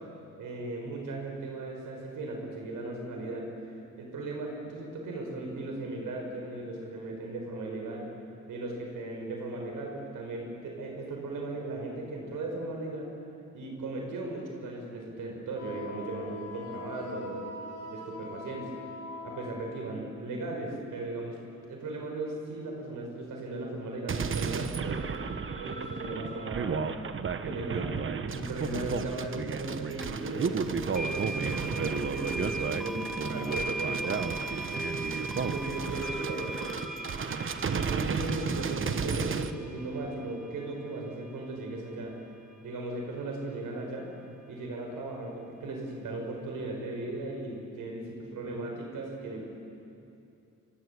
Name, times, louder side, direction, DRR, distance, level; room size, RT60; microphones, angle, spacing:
voice 1, 0.4-8.1 8.5-13.1 13.5-17.5 17.9-18.7 19.2-21.4 21.7-25.2 25.6-26.9 27.4-34.2 35.4-36.8 37.7-42.2 42.6-44.1 44.5-49.4, right 2 dB, 90° right, 1 dB, 5.1 m, -37 dB
Wind instrument woodwind instrument, 15.5-20.0, left 3 dB, 50° left, 5.4 m, -43 dB
sound 1, 24.1-39.5, right 5 dB, 40° right, 1.2 m, -33 dB
sound 2, 30.0-30.1 30.9-41.9, right 1 dB, ahead, 2.1 m, -39 dB
28.5 x 24.5 x 8.2 m, 2.8 s
cardioid pair, 130°, 31 cm